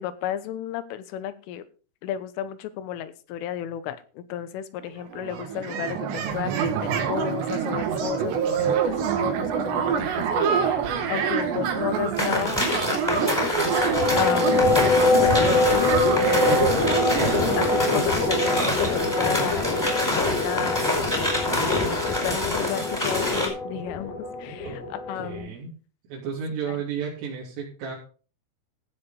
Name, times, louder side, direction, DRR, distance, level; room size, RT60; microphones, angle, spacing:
voice 1, 0.0-1.7 2.0-13.5 14.2-14.7 15.2-16.9 17.3-19.8 20.1-21.4 21.9-25.6 26.7-26.8, left 10 dB, 80° left, 13 dB, 3.6 m, -33 dB
sound 1, 4.8-4.9 5.1-19.7, right 7 dB, 65° right, 3.8 m, -27 dB
sound 2, 12.2-23.5, left 2 dB, 5° left, 4.1 m, -26 dB
sound 3, 13.6-25.4, left 3 dB, 45° left, 4.3 m, -25 dB
voice 2, 25.2-25.8 26.1-28.0, right 7 dB, 80° right, -6 dB, 6.0 m, -32 dB
15.5 x 6.8 x 5.3 m, 0.37 s
omnidirectional pair, 5.7 m